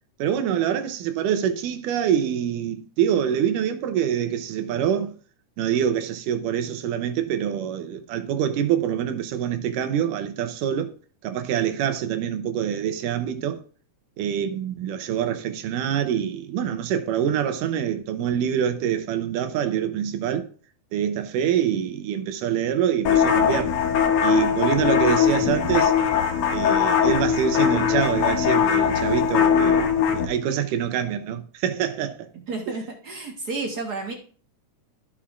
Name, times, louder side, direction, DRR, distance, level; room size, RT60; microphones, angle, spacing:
voice 1, 0.2-5.1 5.6-10.9 11.2-13.6 14.2-20.5 20.9-23.7 24.2-26.0 26.5-29.9 30.1-32.3, right 9 dB, 85° right, 2.3 m, -25 dB
sound 1, 23.1-30.3, left 7 dB, 70° left, 1.7 m, -20 dB
voice 2, 32.5-34.1, right 3 dB, 55° right, 1.0 m, -31 dB
14.0 x 5.8 x 2.5 m
omnidirectional pair, 3.7 m